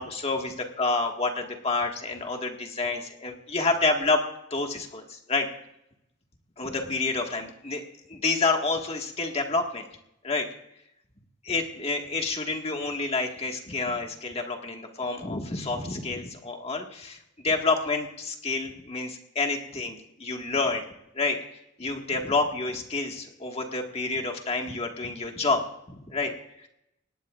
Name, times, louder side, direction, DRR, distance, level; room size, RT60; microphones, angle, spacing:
voice 1, 0.0-4.2 4.5-5.5 6.6-7.8 8.1-9.9 10.2-10.5 11.4-20.8 21.1-21.4 21.8-25.6 25.9-26.3 26.6-26.7, left 3 dB, 35° left, 2 dB, 1.8 m, -28 dB
21.0 x 18.0 x 2.5 m, 0.81 s
head